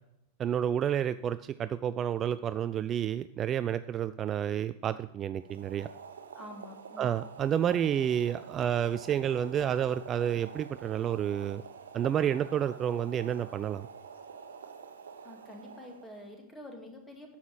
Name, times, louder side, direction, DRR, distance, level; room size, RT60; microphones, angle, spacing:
voice 1, 0.4-5.9 7.0-11.6 11.9-13.9, right 9 dB, 25° right, 13 dB, 0.3 m, -30 dB
Boiling, 5.4-16.4, right 6 dB, 65° right, 1.0 m, -48 dB
voice 2, 6.3-7.1 15.2-17.4, left 1 dB, 10° left, 2 dB, 2.3 m, -47 dB
9.4 x 7.3 x 6.2 m, 0.83 s
figure-of-eight pair, 90°, 0 cm